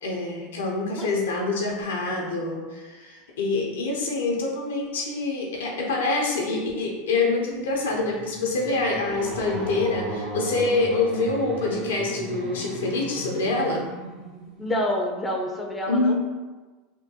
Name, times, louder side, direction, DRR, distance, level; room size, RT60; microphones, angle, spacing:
voice 1, 0.0-13.9 15.9-16.1, left 3 dB, 85° left, -1 dB, 0.7 m, -26 dB
sound 1, 7.6-14.9, right 2 dB, 45° right, 0.7 m, -36 dB
voice 2, 14.6-16.1, left 1 dB, 15° left, 0 dB, 0.5 m, -27 dB
3.4 x 2.2 x 2.8 m, 1.3 s
hypercardioid pair, 95°, 0 cm